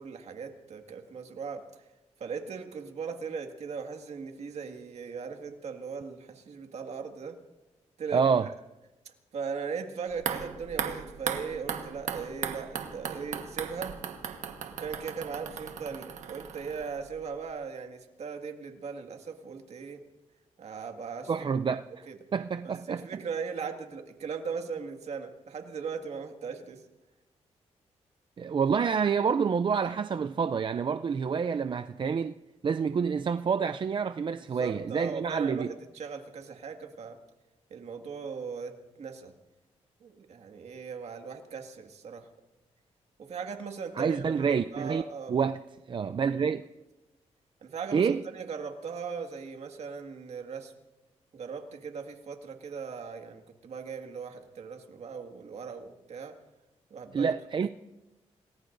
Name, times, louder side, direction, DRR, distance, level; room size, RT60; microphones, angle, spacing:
voice 1, 0.0-1.6 2.2-7.4 8.0-8.5 9.1-14.0 14.8-20.0 20.6-21.3 22.1-22.2 22.6-26.8 34.5-37.2 37.7-39.3 40.0-42.3 43.2-45.4 47.6-50.7 51.3-56.4 56.9-57.3, right 5 dB, 65° right, 2.0 m, -38 dB
voice 2, 8.1-8.5 21.3-22.0 22.3-23.2 28.4-32.4 32.6-35.7 44.0-45.0 45.3-45.6 45.9-46.6 47.9-48.2 57.1-57.7, right 6 dB, 45° right, 0.4 m, -28 dB
sound 1, 10.1-17.2 17.5-17.6, right 7 dB, 90° right, 1.4 m, -37 dB
27.5 x 20.0 x 2.6 m
cardioid pair, 85°, 12 cm